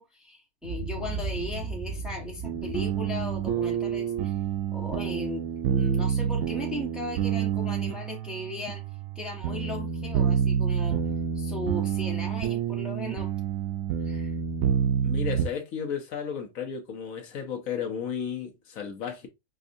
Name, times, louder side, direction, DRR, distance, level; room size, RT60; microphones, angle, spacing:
voice 1, 0.0-4.3 4.7-8.8 9.1-11.0 11.3-13.3 14.1-14.3, left 1 dB, ahead, 0.9 m, -37 dB
Boom, 0.6-4.9, right 4 dB, 60° right, 1.9 m, -37 dB
sound 1, 2.4-15.5, right 8 dB, 80° right, 1.0 m, -28 dB
voice 2, 15.0-19.3, left 7 dB, 80° left, 1.3 m, -33 dB
5.2 x 2.4 x 2.5 m
omnidirectional pair, 1.4 m